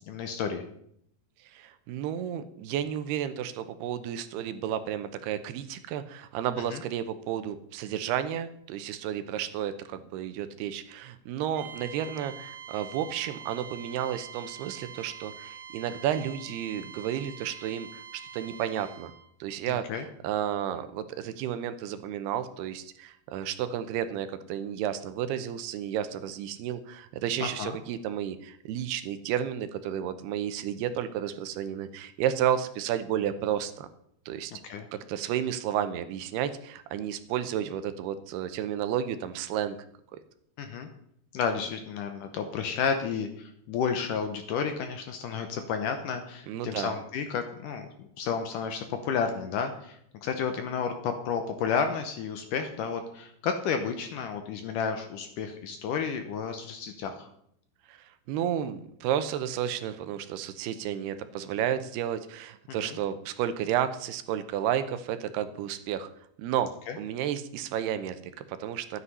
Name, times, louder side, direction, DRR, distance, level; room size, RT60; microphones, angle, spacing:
voice 1, 0.1-0.6 6.7-6.8 19.7-20.1 27.4-27.8 34.6-34.9 40.6-40.9 41.3-47.9 48.2-57.3 62.7-63.0 66.9-67.0, left 6 dB, 70° left, 7 dB, 2.1 m, -31 dB
voice 2, 1.5-18.0 18.3-19.1 19.4-33.9 34.3-34.5 34.9-39.8 46.5-46.9 57.9-66.1 66.4-66.7 67.0-69.0, right 10 dB, 85° right, 11 dB, 2.8 m, -32 dB
sound 1, 11.5-19.3, right 7 dB, 65° right, 2.6 m, -45 dB
12.5 x 9.8 x 5.5 m, 0.69 s
omnidirectional pair, 4.6 m